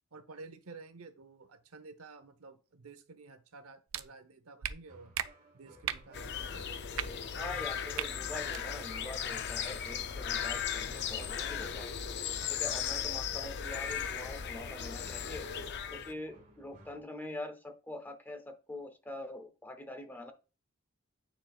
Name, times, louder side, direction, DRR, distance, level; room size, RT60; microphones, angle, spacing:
voice 1, 0.1-5.1 5.5-7.3 12.4-12.5, right 3 dB, 80° right, 10 dB, 0.8 m, -52 dB
sound 1, 3.9-4.0 4.6-4.7 5.1-5.3 5.8-6.0 6.9-7.1 7.9-8.1 8.5-8.6, right 10 dB, 65° right, 0.4 m, -35 dB
sound 2, 4.9-17.0, right 1 dB, 35° right, 1.8 m, -58 dB
sound 3, 6.1-16.1, left 8 dB, 50° left, 0.5 m, -37 dB
voice 2, 7.4-11.9 12.5-15.5 15.9-20.3, left 1 dB, 10° left, 7 dB, 0.6 m, -44 dB
9.2 x 4.4 x 2.3 m, 0.33 s
head